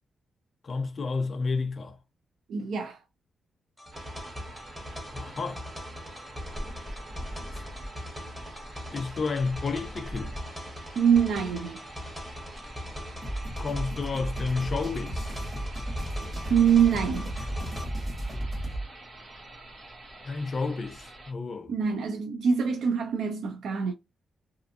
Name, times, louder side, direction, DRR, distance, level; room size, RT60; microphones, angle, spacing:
voice 1, 0.6-2.0 5.1-5.6 7.5-7.6 8.9-10.3 13.6-15.4 20.2-21.7, left 4 dB, 35° left, 0.5 m, -31 dB
voice 2, 2.5-3.0 11.0-11.8 16.5-17.3 21.7-23.9, right 7 dB, 75° right, 0.3 m, -24 dB
sound 1, 3.8-17.8, equal, 5° right, 0.7 m, -41 dB
sound 2, 3.9-21.3, right 1 dB, 55° right, 0.9 m, -44 dB
sound 3, 13.2-18.8, right 1 dB, 30° right, 1.1 m, -34 dB
2.5 x 2.4 x 2.6 m
wide cardioid pair, 165°, 0 cm